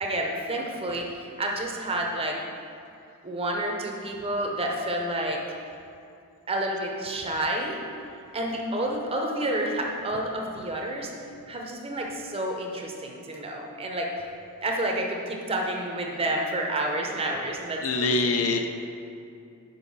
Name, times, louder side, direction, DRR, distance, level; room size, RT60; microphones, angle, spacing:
voice 1, 0.0-2.4 3.2-5.4 6.5-7.8 8.3-11.1 11.5-14.1 14.6-18.2, right 1 dB, 25° right, 1 dB, 0.8 m, -29 dB
voice 2, 17.8-18.7, left 3 dB, 65° left, 5 dB, 0.6 m, -24 dB
6.4 x 5.1 x 5.4 m, 2.5 s
head